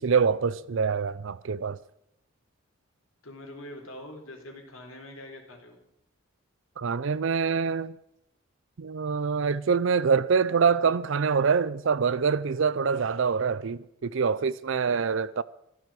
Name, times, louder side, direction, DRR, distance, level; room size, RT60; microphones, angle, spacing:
voice 1, 0.0-1.8 6.8-8.0 8.8-15.4, right 5 dB, 65° right, 0.5 m, -25 dB
voice 2, 3.2-5.8 14.9-15.0, left 1 dB, 80° left, 3.8 m, -44 dB
14.5 x 12.5 x 7.5 m
head